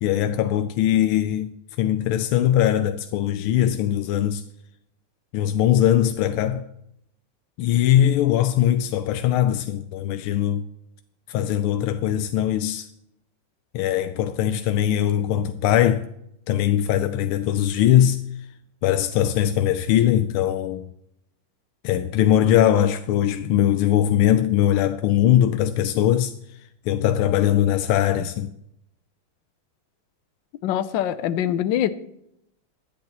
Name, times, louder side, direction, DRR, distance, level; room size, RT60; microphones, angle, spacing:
voice 1, 0.0-4.4 5.3-6.7 7.6-10.6 11.3-12.9 13.7-16.1 16.5-18.2 18.8-20.9 21.8-26.3 26.9-28.5, left 11 dB, 90° left, 1.5 m, -21 dB
voice 2, 30.6-31.9, left 11 dB, 70° left, 1.3 m, -23 dB
23.0 x 8.5 x 3.0 m
omnidirectional pair, 2.3 m